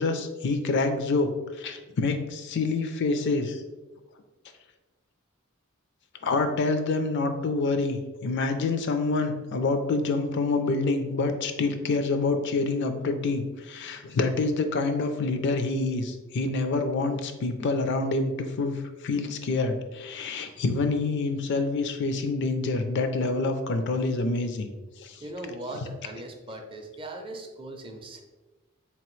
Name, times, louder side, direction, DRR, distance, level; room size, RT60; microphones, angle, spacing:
voice 1, 0.0-3.6 6.2-24.7 25.0-25.2 25.7-25.9, left 3 dB, 55° left, 7 dB, 0.4 m, -27 dB
voice 2, 25.2-28.2, right 1 dB, 25° right, 3 dB, 0.4 m, -39 dB
3.8 x 2.9 x 3.1 m, 1.2 s
head